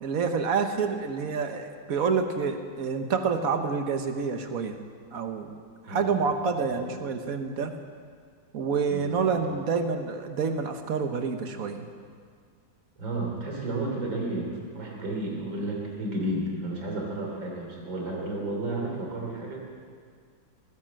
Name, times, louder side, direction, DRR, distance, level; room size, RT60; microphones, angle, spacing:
voice 1, 0.0-4.8 5.1-5.5 5.9-7.7 8.5-11.9, right 5 dB, 50° right, 6 dB, 1.3 m, -28 dB
voice 2, 5.8-6.2 6.5-7.0 8.9-9.3 13.0-19.7, right 1 dB, 75° right, -1 dB, 3.9 m, -32 dB
18.5 x 10.5 x 7.5 m, 2.1 s
omnidirectional pair, 2.1 m